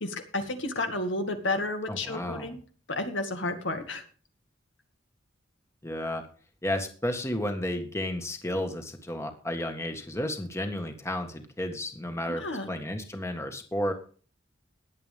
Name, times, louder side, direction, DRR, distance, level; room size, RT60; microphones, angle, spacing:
voice 1, 0.0-2.6 2.9-4.0 12.4-12.7, left 2 dB, 75° left, 5 dB, 2.2 m, -31 dB
voice 2, 1.9-2.5 5.8-6.3 6.6-13.9, left 1 dB, 15° left, 5 dB, 1.7 m, -32 dB
20.5 x 8.2 x 3.6 m, 0.40 s
head